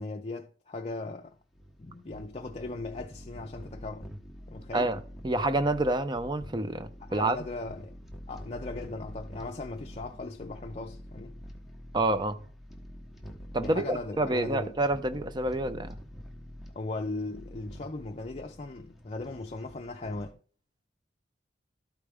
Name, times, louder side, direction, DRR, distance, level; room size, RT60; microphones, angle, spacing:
voice 1, 0.0-1.4 1.8-4.1 4.5-4.9 7.0-8.0 8.3-11.4 13.6-14.8 16.7-20.4, left 2 dB, 40° left, 0.5 m, -38 dB
sound 1, 1.0-20.3, equal, ahead, 1.1 m, -46 dB
voice 2, 5.2-7.4 11.9-12.4 13.5-16.0, right 2 dB, 25° right, 0.6 m, -28 dB
12.5 x 4.9 x 3.4 m
head